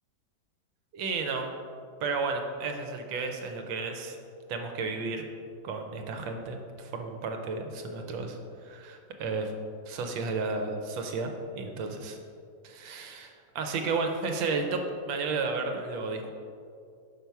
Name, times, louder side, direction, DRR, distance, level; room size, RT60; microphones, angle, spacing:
voice 1, 0.9-1.5 2.0-4.2 4.5-5.3 5.6-9.5 9.9-12.2 12.6-14.8 15.1-16.3, right 4 dB, 75° right, 4 dB, 1.4 m, -33 dB
5.9 x 5.5 x 4.5 m, 2.4 s
omnidirectional pair, 2.2 m